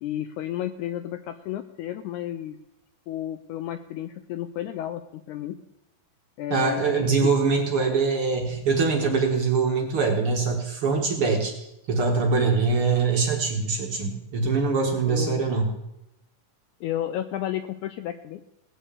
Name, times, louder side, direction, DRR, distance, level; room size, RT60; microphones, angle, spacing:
voice 1, 0.0-2.6 3.1-5.6 6.4-7.3 15.1-15.5 16.8-18.4, left 12 dB, 80° left, 10 dB, 1.8 m, -32 dB
voice 2, 6.5-15.7, right 4 dB, 50° right, 2 dB, 2.0 m, -23 dB
18.0 x 6.1 x 8.3 m, 0.86 s
omnidirectional pair, 4.0 m